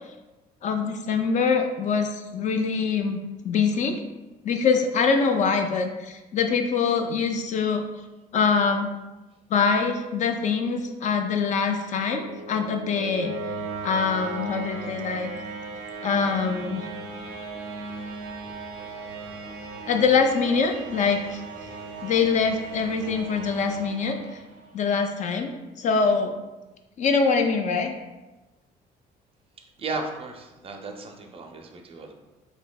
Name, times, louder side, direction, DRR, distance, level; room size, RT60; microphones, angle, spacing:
voice 1, 0.6-3.2 3.4-4.0 4.4-7.8 8.3-8.9 9.5-13.3 13.8-15.3 16.0-16.9 19.9-21.4 22.0-24.4 24.7-25.5 25.8-26.3 27.0-27.9, left 5 dB, 45° left, 5 dB, 0.4 m, -24 dB
sound 1, 11.8-24.8, right 3 dB, 90° right, 0.6 m, -37 dB
voice 2, 29.8-32.1, right 3 dB, 35° right, 3 dB, 0.4 m, -35 dB
3.9 x 2.7 x 2.2 m, 1.1 s
cardioid pair, 110°, 17 cm